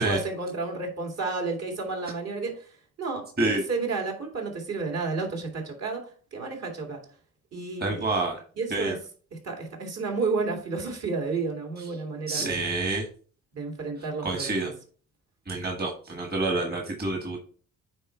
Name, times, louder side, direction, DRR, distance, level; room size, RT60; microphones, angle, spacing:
voice 1, 0.0-2.6 3.0-7.0 7.5-8.1 8.6-9.0 9.3-12.6 13.5-14.7, right 4 dB, 55° right, 2.4 m, -31 dB
voice 2, 7.8-8.4 8.7-8.9 12.3-13.1 14.2-14.7 15.5-17.4, right 2 dB, 30° right, 1.6 m, -27 dB
8.9 x 3.5 x 4.4 m
cardioid pair, 90°, 30 cm